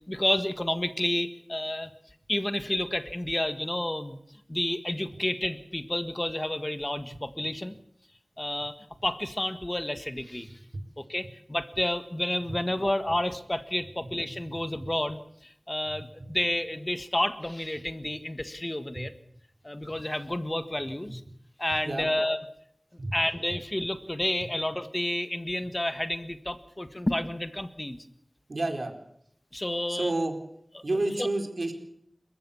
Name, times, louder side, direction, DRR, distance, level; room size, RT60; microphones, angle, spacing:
voice 1, 0.1-1.9 2.3-4.2 4.5-7.7 8.4-8.8 9.0-10.6 11.0-19.1 19.6-21.2 21.6-22.4 23.1-28.0 29.5-30.1 30.7-30.8, left 1 dB, 25° left, 10 dB, 1.7 m, -30 dB
voice 2, 28.5-28.9 29.9-30.3 30.8-31.7, right 2 dB, 75° right, 5 dB, 4.4 m, -30 dB
29.5 x 15.0 x 7.3 m, 0.71 s
wide cardioid pair, 50°, 0 cm